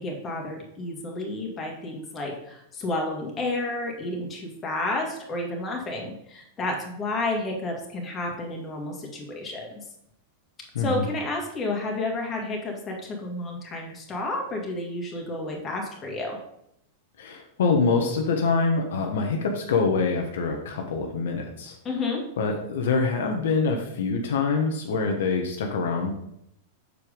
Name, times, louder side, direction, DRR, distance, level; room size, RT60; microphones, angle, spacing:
voice 1, 0.0-9.8 10.8-16.4 21.8-22.2, left 2 dB, 25° left, 0 dB, 2.1 m, -31 dB
voice 2, 17.2-21.8 22.4-26.1, left 4 dB, 75° left, 2 dB, 1.1 m, -25 dB
6.9 x 4.7 x 5.1 m, 0.78 s
hypercardioid pair, 115°, 0 cm